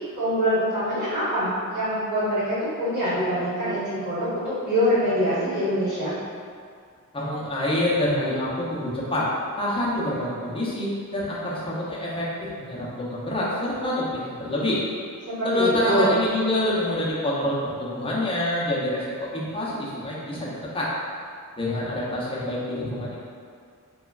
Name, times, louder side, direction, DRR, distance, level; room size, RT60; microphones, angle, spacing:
voice 1, 0.2-6.2 15.3-16.2, equal, 60° right, -15 dB, 1.4 m, -24 dB
voice 2, 7.1-9.3 9.6-14.8 15.4-20.9 21.6-23.2, left 1 dB, 15° left, -7 dB, 0.5 m, -26 dB
3.0 x 2.2 x 2.3 m, 2.2 s
wide cardioid pair, 120°, 33 cm